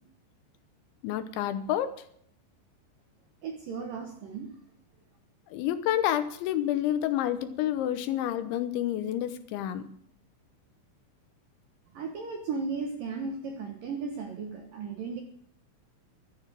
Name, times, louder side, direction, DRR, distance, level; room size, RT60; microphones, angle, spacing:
voice 1, 1.0-2.0 5.5-9.8, left 11 dB, 80° left, 11 dB, 3.2 m, -29 dB
voice 2, 3.4-4.5 11.9-15.2, right 4 dB, 70° right, 3 dB, 2.2 m, -35 dB
13.0 x 10.0 x 7.5 m, 0.65 s
omnidirectional pair, 5.5 m